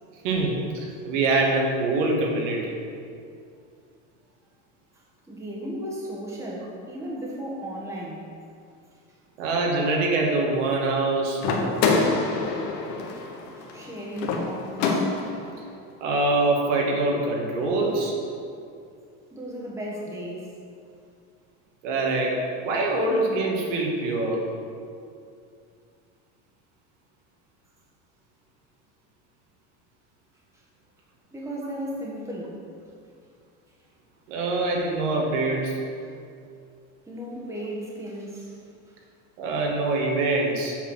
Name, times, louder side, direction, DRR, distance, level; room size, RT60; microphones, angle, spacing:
voice 1, 0.2-2.8 9.4-11.4 16.0-18.2 21.8-24.4 34.3-35.8 37.4-37.5 39.4-40.8, right 2 dB, 85° right, -1 dB, 1.9 m, -24 dB
voice 2, 5.3-8.3 13.6-15.1 19.3-20.5 31.3-32.6 36.0-36.1 37.1-38.7, equal, 10° right, -3 dB, 1.3 m, -35 dB
sound 1, 11.4-15.5, left 4 dB, 60° left, 1.2 m, -26 dB
8.0 x 4.9 x 6.3 m, 2.4 s
supercardioid pair, 145°, 36 cm